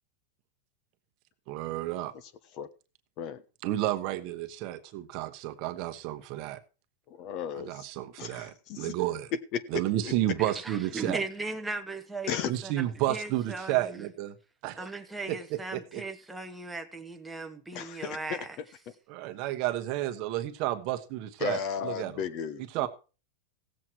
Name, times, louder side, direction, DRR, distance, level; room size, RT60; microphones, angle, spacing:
voice 1, 1.5-2.1 3.6-6.6 7.6-9.3 9.7-11.2 12.5-14.3 14.6-14.9 15.3-16.0 19.1-22.2 22.7-22.9, right 14 dB, 45° right, 1.2 m, -31 dB
voice 2, 7.1-7.9 8.2-9.0 9.5-10.1 12.3-12.5 17.7-18.6 21.4-22.9, left 8 dB, 40° left, 1.1 m, -35 dB
voice 3, 10.4-14.0 14.8-18.6, right 3 dB, 5° right, 1.1 m, -38 dB
16.5 x 7.6 x 4.6 m
supercardioid pair, 160°, 0 cm